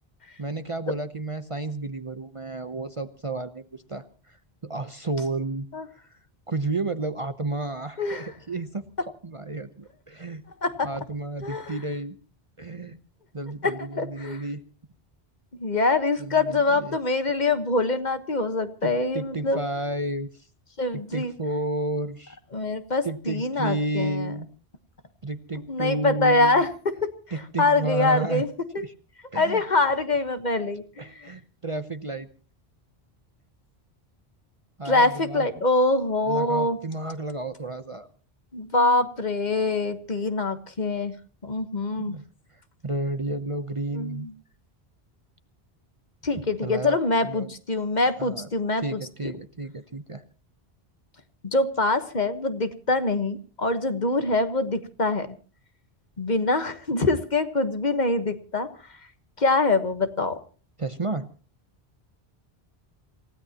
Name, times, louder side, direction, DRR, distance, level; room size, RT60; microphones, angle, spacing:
voice 1, 0.4-4.4 4.6-5.7 6.5-10.4 10.8-12.2 12.6-13.0 13.3-14.6 16.2-17.0 18.8-20.5 20.9-22.4 23.0-24.5 25.2-26.6 27.3-28.5 28.8-28.9 29.3-29.6 31.0-32.3 34.8-35.6 36.3-38.1 42.0-42.2 42.5-44.3 46.6-47.5 48.2-48.5 48.8-50.2 60.8-61.3, right 2 dB, 35° right, 10 dB, 0.8 m, -32 dB
voice 2, 11.4-11.8 13.6-14.4 15.6-19.6 20.8-21.3 22.5-24.3 25.7-26.7 27.6-28.5 29.3-31.3 34.8-36.8 38.5-41.1 41.4-42.2 43.9-44.3 46.2-49.3 51.4-55.3 56.2-58.7 59.4-60.4, left 2 dB, 45° left, 9 dB, 1.4 m, -24 dB
28.0 x 16.5 x 2.9 m, 0.37 s
omnidirectional pair, 1.1 m